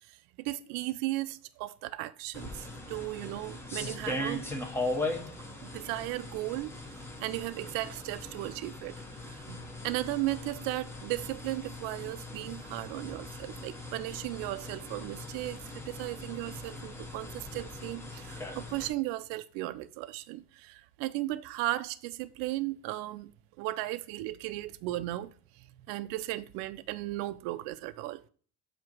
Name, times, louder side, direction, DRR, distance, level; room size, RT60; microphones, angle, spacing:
voice 1, 0.1-4.5 5.6-6.7 7.2-23.3 23.6-28.2, right 17 dB, 70° right, 0.5 m, -36 dB
sound 1, 2.3-18.9, left 2 dB, 5° left, 0.7 m, -40 dB
7.6 x 2.9 x 5.8 m
cardioid pair, 150°, 37 cm